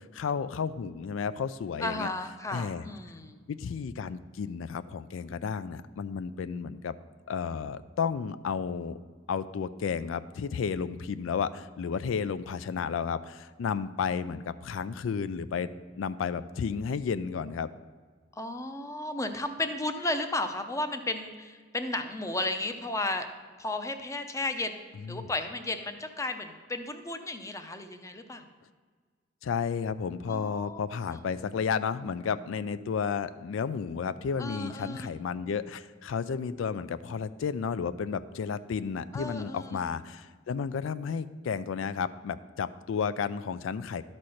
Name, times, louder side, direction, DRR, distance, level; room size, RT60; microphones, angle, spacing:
voice 1, 0.0-2.1 2.5-2.8 3.5-6.9 7.3-9.0 9.3-15.7 16.0-17.7 25.0-25.3 29.4-44.0, left 6 dB, 80° left, 15 dB, 0.4 m, -32 dB
voice 2, 1.8-3.4 18.4-23.3 23.6-24.8 25.1-28.4 30.3-30.8 31.1-31.2 34.4-35.1 39.1-39.8, left 2 dB, 15° left, 8 dB, 0.6 m, -34 dB
12.0 x 4.3 x 6.3 m, 1.5 s
head